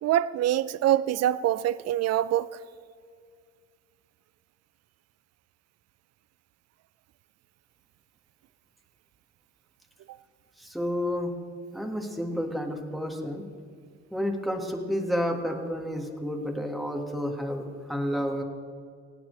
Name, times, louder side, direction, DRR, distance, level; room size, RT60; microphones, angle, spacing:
voice 1, 0.0-2.5, right 12 dB, 55° right, 0.5 m, -24 dB
voice 2, 10.6-11.3 11.7-13.4 14.1-18.4, equal, ahead, 1.6 m, -30 dB
24.5 x 8.9 x 3.3 m
cardioid pair, 90°, 30 cm